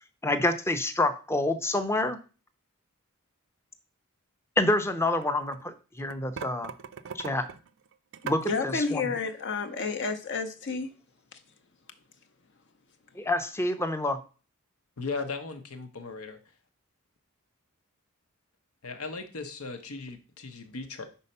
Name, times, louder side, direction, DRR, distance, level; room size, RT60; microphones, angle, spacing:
voice 1, 0.2-2.2 4.6-6.7 7.1-7.5 8.2-9.1 13.2-14.2, left 2 dB, 10° left, 0.5 m, -27 dB
sound 1, 4.8-5.6 6.0-8.5, right 6 dB, 60° right, 0.4 m, -40 dB
voice 2, 8.4-10.9, left 4 dB, 55° left, 0.7 m, -30 dB
voice 3, 15.0-16.4 18.8-21.1, left 4 dB, 85° left, 0.9 m, -37 dB
5.5 x 4.2 x 5.4 m
head